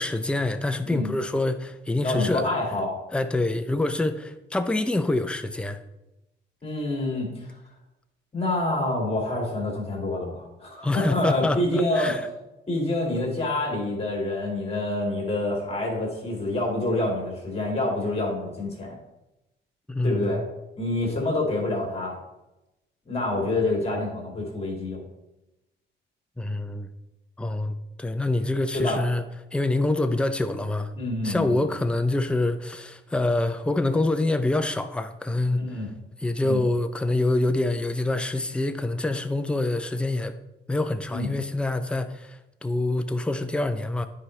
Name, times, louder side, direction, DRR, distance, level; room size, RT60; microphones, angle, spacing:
voice 1, 0.0-2.5 3.1-5.8 10.8-12.2 19.9-20.5 26.4-26.9 27.4-29.2 29.5-30.9 31.2-35.7 36.2-40.4 40.7-44.1, left 2 dB, 5° left, 0.5 m, -26 dB
voice 2, 2.0-2.9 6.6-7.5 8.3-12.2 12.7-19.0 20.0-20.4 20.8-22.2 23.1-25.0 28.7-29.0 30.9-31.6 35.5-35.9 36.4-36.6 41.1-41.3, left 2 dB, 30° left, 2.4 m, -27 dB
9.7 x 4.9 x 3.2 m
cardioid pair, 90°, 20 cm